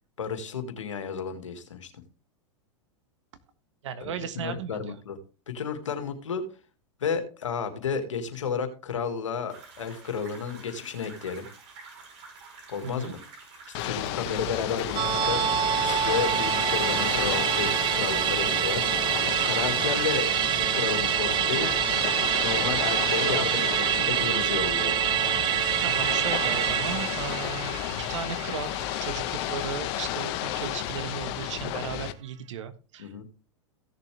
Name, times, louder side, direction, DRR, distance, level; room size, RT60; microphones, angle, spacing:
voice 1, 0.2-1.9 4.0-5.2 5.5-6.4 7.0-11.5 12.7-13.2 13.7-21.7 22.4-25.0 33.0-33.2, left 6 dB, 90° left, 8 dB, 2.0 m, -32 dB
voice 2, 3.8-5.0 12.8-13.1 23.3-23.6 25.8-28.7 29.0-33.1, right 8 dB, 75° right, 11 dB, 1.4 m, -36 dB
sound 1, 9.5-18.2, right 4 dB, 55° right, 5.7 m, -49 dB
Ocean / Boat Water vehicle, 13.7-32.1, left 13 dB, 55° left, 1.1 m, -32 dB
Musical instrument, 14.9-29.6 29.9-30.0, right 13 dB, 30° right, 0.4 m, -26 dB
16.0 x 7.0 x 3.4 m, 0.35 s
hypercardioid pair, 105°, 16 cm